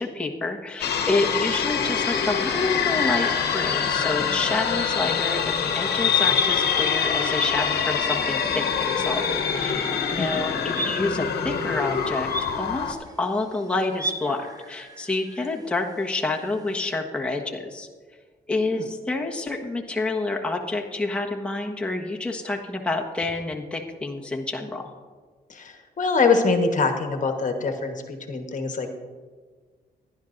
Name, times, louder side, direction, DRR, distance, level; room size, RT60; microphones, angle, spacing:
voice 1, 0.0-12.3 12.6-17.9 18.5-24.8, left 2 dB, 5° left, 0 dB, 1.3 m, -28 dB
sound 1, 0.8-12.9, left 7 dB, 85° left, 1.0 m, -25 dB
sound 2, 10.7-17.0, right 2 dB, 20° right, 1.2 m, -38 dB
voice 2, 25.5-28.9, left 4 dB, 50° left, 5 dB, 1.3 m, -24 dB
16.5 x 11.0 x 2.6 m, 1.5 s
cardioid pair, 90°, 17 cm